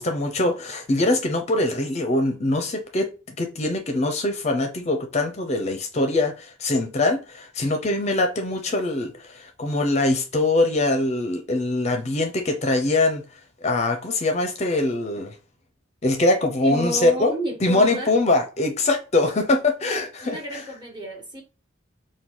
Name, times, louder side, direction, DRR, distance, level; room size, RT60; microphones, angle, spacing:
voice 1, 0.0-13.2 13.6-15.3 16.0-17.3 17.6-20.6, left 2 dB, 35° left, 0.5 m, -23 dB
voice 2, 16.6-18.1 20.2-21.4, right 1 dB, 25° right, 1.3 m, -31 dB
4.5 x 2.2 x 3.7 m
head